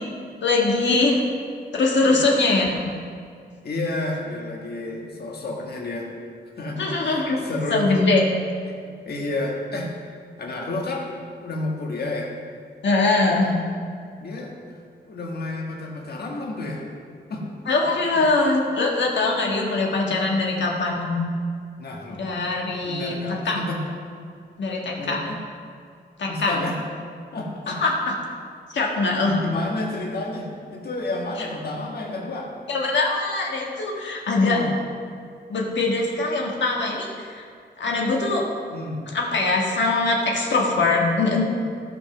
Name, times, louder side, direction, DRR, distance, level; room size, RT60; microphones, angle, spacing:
voice 1, 0.4-1.2 1.7-2.8 6.8-7.4 7.7-8.2 12.8-13.5 17.7-21.1 22.1-23.6 24.6-25.2 26.2-26.5 27.8-28.1 28.7-29.4 31.4-31.5 32.7-34.6 35.5-37.5 37.8-38.4 39.1-41.4, left 3 dB, 90° left, -1 dB, 1.5 m, -22 dB
voice 2, 3.6-6.1 6.6-7.9 9.1-9.9 10.4-11.1 11.4-12.3 13.3-13.5 14.2-14.8 15.1-16.9 17.3-17.6 18.1-18.2 21.8-22.2 22.8-23.8 25.0-25.4 26.3-26.8 27.3-27.8 29.4-32.5 34.4-34.7 38.7-39.0, left 2 dB, 60° left, -1 dB, 1.4 m, -30 dB
15.0 x 5.5 x 6.0 m, 2.2 s
wide cardioid pair, 145°, 18 cm